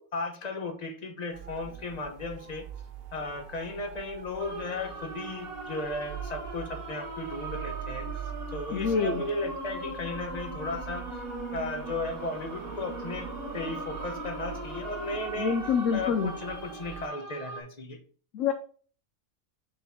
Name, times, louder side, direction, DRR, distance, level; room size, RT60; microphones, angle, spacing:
voice 1, 0.0-2.6 3.1-11.2 11.5-13.3 13.5-15.6 15.9-18.0, left 2 dB, 35° left, 5 dB, 1.0 m, -35 dB
sound 1, 1.3-17.1, right 8 dB, 55° right, 0.8 m, -43 dB
sound 2, 4.4-17.6, right 1 dB, 85° right, 2.3 m, -40 dB
voice 2, 8.7-9.2 15.4-16.3 18.3-18.5, left 6 dB, 70° left, 6 dB, 1.0 m, -26 dB
6.6 x 4.3 x 3.6 m, 0.43 s
omnidirectional pair, 1.5 m